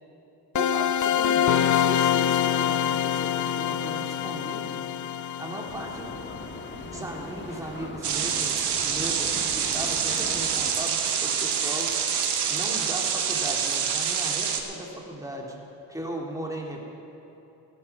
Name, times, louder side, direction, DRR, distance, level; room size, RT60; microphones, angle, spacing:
voice 1, 0.5-4.9 5.4-6.1 6.9-12.0 12.5-15.6 15.9-16.9, right 1 dB, 10° right, -1 dB, 2.5 m, -37 dB
sound 1, 0.6-7.2, left 10 dB, 50° left, 0.5 m, -25 dB
sound 2, 5.7-10.7, left 1 dB, 25° left, 2.1 m, -40 dB
sound 3, 8.0-14.6, right 7 dB, 80° right, 1.2 m, -26 dB
14.5 x 11.5 x 5.9 m, 3.0 s
supercardioid pair, 50°, 40 cm